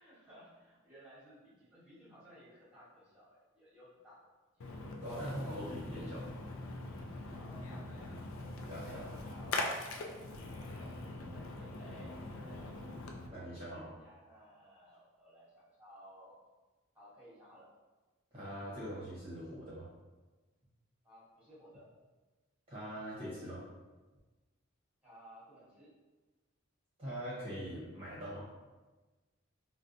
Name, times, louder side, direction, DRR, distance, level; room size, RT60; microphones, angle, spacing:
voice 1, 0.0-4.2 7.4-9.8 10.4-12.7 14.0-16.4 16.9-17.7 21.0-21.9 25.0-25.9, equal, 5° right, -9 dB, 1.0 m, -58 dB
Splash splatter, 4.6-13.3, left 2 dB, 80° left, 0.4 m, -42 dB
voice 2, 5.0-6.3 8.7-9.0 13.3-13.9 18.3-19.9 22.7-23.6 27.0-28.5, equal, 30° right, -9 dB, 0.8 m, -42 dB
4.0 x 2.1 x 2.5 m, 1.2 s
head